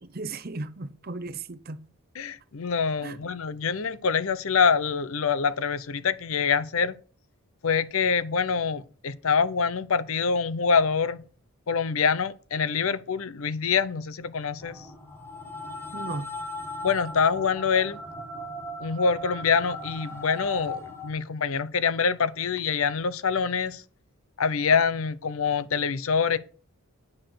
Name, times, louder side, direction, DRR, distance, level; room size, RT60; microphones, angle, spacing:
voice 1, 0.0-1.8 3.0-3.2 15.9-16.3, right 3 dB, 40° right, 0.7 m, -36 dB
voice 2, 2.1-7.0 7.6-11.2 11.7-14.9 16.8-18.0 18.8-23.8 24.4-26.4, left 5 dB, 70° left, 0.6 m, -25 dB
sound 1, 14.6-21.1, left 2 dB, 10° left, 1.4 m, -38 dB
9.9 x 6.6 x 6.1 m
head